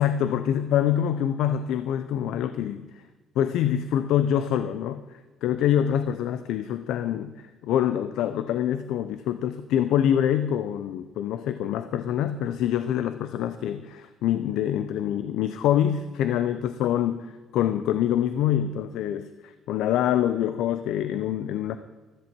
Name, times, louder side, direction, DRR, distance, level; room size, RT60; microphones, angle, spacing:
voice 1, 0.0-2.9 3.4-5.0 5.4-17.3 17.5-21.8, left 10 dB, 80° left, 11 dB, 0.6 m, -25 dB
15.5 x 13.5 x 4.6 m, 1.3 s
cardioid pair, 105°, 0 cm